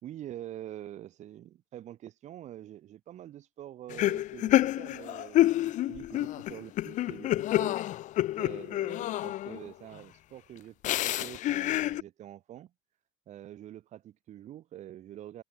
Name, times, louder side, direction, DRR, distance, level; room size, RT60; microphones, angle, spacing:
voice 1, 0.0-7.8 8.4-12.7 13.3-15.4, right 12 dB, 50° right, 5.6 m, -46 dB
sound 1, 3.9-9.7 10.8-12.0, left 14 dB, 55° left, 1.5 m, -28 dB
cardioid pair, 120°, 15 cm